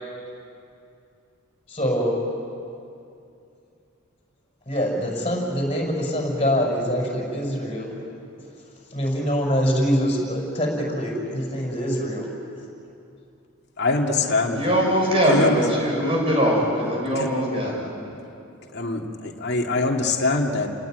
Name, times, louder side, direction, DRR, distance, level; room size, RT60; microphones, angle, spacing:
voice 1, 1.7-2.1 4.7-8.0 8.9-12.3, equal, 25° left, -2 dB, 6.4 m, -24 dB
voice 2, 13.8-14.6 15.3-15.6 17.2-17.3 18.7-20.7, left 3 dB, 50° left, 1 dB, 2.4 m, -23 dB
voice 3, 14.5-17.8, equal, 25° right, -2 dB, 6.9 m, -21 dB
30.0 x 18.5 x 9.4 m, 2.6 s
head